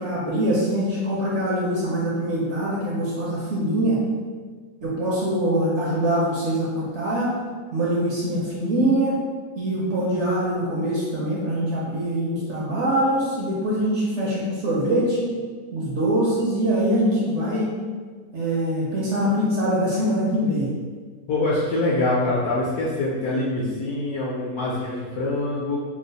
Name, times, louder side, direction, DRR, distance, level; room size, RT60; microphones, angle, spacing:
voice 1, 0.0-4.0 4.8-7.3 7.7-9.2 9.6-15.3 15.7-17.7 18.3-20.7, right 1 dB, 65° right, -5 dB, 0.7 m, -23 dB
voice 2, 21.3-25.8, left 2 dB, 70° left, -6 dB, 1.0 m, -24 dB
3.1 x 2.0 x 3.9 m, 1.5 s
omnidirectional pair, 1.8 m